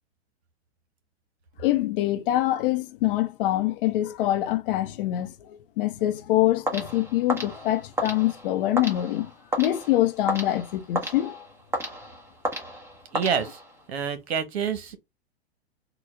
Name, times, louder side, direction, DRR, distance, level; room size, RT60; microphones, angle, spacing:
voice 1, 1.6-5.3 5.8-9.3 9.6-11.4, left 14 dB, 55° left, 0.8 m, -24 dB
sound 1, 6.7-13.9, right 1 dB, 10° right, 1.0 m, -33 dB
voice 2, 13.1-13.6 13.9-15.0, right 7 dB, 75° right, 1.1 m, -27 dB
3.9 x 2.3 x 3.3 m
hypercardioid pair, 120°, 32 cm